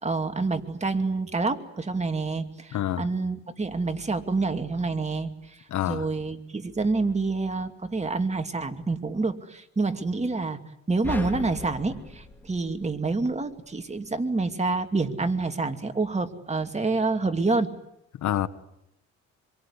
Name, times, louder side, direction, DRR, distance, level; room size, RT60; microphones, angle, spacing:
voice 1, 0.0-10.6 10.9-17.7, right 3 dB, 20° right, 2.6 m, -27 dB
voice 2, 2.7-3.1 5.7-6.1 18.2-18.5, left 11 dB, 70° left, 1.5 m, -27 dB
sound 1, 11.0-13.4, left 2 dB, 5° left, 4.3 m, -38 dB
26.0 x 23.5 x 9.9 m
cardioid pair, 90°, 30 cm